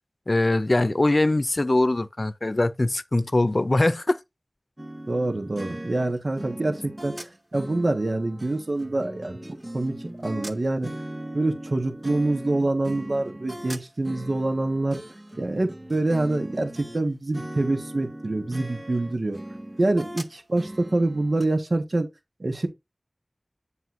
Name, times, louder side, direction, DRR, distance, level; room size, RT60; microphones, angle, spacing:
voice 1, 0.3-4.2, left 2 dB, 55° left, 0.6 m, -22 dB
sound 1, 4.8-17.0 17.3-21.5, right 1 dB, 35° right, 1.2 m, -39 dB
voice 2, 5.1-9.4 9.7-10.9 11.3-15.0 15.4-19.4 19.8-22.1 22.4-22.7, right 2 dB, 80° right, 1.5 m, -26 dB
7.9 x 7.8 x 2.6 m
wide cardioid pair, 50°, 0 cm